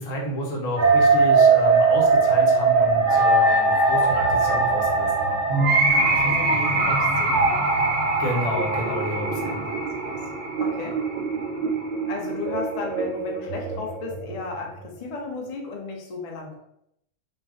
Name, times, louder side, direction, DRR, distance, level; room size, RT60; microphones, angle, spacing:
voice 1, 0.0-5.4 8.2-9.6, equal, 90° left, -1 dB, 1.1 m, -30 dB
sound 1, 0.8-14.8, right 3 dB, 60° right, 0.5 m, -21 dB
voice 2, 5.9-7.8 9.3-10.3 10.6-11.0 12.1-16.6, left 3 dB, 50° left, 0 dB, 0.4 m, -35 dB
2.4 x 2.1 x 3.5 m, 0.76 s
omnidirectional pair, 1.3 m